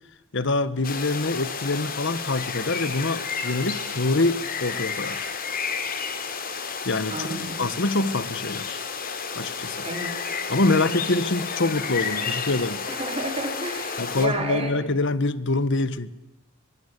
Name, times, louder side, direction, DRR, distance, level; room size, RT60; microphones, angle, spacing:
voice 1, 0.3-5.3 6.8-8.8 9.4-9.8 10.5-12.8 14.0-16.1, left 2 dB, 60° left, 1.4 m, -25 dB
sound 1, 0.8-14.3, left 5 dB, 45° left, 3.3 m, -31 dB
voice 2, 7.1-7.7 9.8-10.2 10.7-10.9 12.2-12.3 12.9-14.8, right 1 dB, 30° right, 4.5 m, -31 dB
23.5 x 22.0 x 8.2 m
head